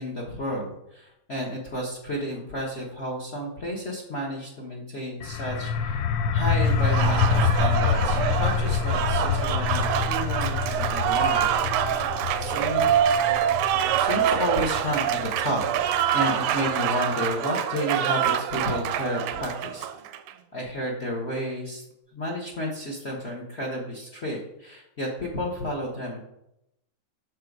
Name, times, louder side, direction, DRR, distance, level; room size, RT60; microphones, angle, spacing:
voice 1, 0.0-5.9 6.3-11.4 12.4-12.9 13.9-15.6 16.1-19.9 20.5-21.8 22.1-26.2, equal, 45° left, -1 dB, 0.9 m, -31 dB
sound 1, 5.2-16.7, left 6 dB, 70° left, 1.1 m, -26 dB
Applause, 6.7-20.3, right 10 dB, 85° right, 1.5 m, -26 dB
6.6 x 5.1 x 4.6 m, 0.82 s
omnidirectional pair, 2.3 m